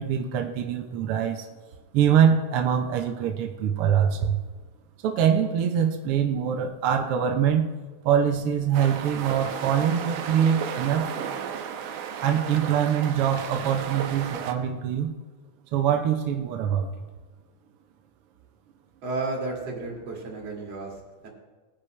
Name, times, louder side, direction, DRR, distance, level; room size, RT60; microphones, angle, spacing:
voice 1, 0.0-1.5 1.9-4.4 5.0-7.7 8.0-11.1 12.2-15.1 15.7-16.9, right 8 dB, 70° right, 4 dB, 1.4 m, -24 dB
sound 1, 8.7-14.5, right 8 dB, 85° right, 2.4 m, -34 dB
voice 2, 19.0-21.3, right 2 dB, 55° right, -1 dB, 3.4 m, -33 dB
20.0 x 10.0 x 3.3 m, 1.3 s
omnidirectional pair, 3.5 m